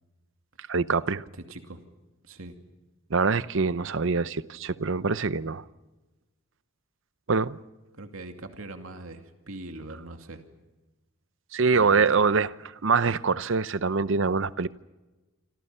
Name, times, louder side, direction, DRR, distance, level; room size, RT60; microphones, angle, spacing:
voice 1, 0.7-1.2 3.1-5.6 7.3-7.6 11.5-12.5 12.8-14.7, right 4 dB, 65° right, 0.7 m, -24 dB
voice 2, 1.5-1.8 2.2-2.6 8.0-10.4 11.7-12.4, right 2 dB, 90° right, 2.5 m, -42 dB
27.0 x 26.5 x 5.6 m
head